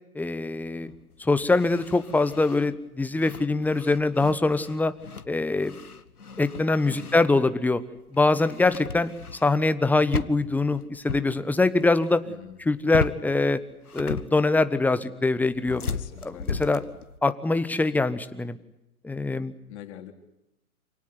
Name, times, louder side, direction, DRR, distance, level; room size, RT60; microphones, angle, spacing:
voice 1, 0.1-0.9 1.2-4.9 5.3-5.8 6.4-7.8 8.1-9.1 9.4-12.2 12.6-13.6 13.9-15.8 16.2-16.8 17.2-18.6 19.0-19.5, left 3 dB, 5° left, 12 dB, 1.1 m, -23 dB
sound 1, 0.6-7.6 7.9-9.8 10.1-11.3 11.6-12.2 12.5-13.3 13.7-14.6 15.4-17.2, left 5 dB, 85° left, 1.6 m, -36 dB
voice 2, 12.3-12.6 15.9-16.8 19.7-20.1, left 12 dB, 50° left, 6 dB, 4.0 m, -44 dB
28.0 x 18.5 x 9.7 m, 0.88 s
figure-of-eight pair, 115°, 44 cm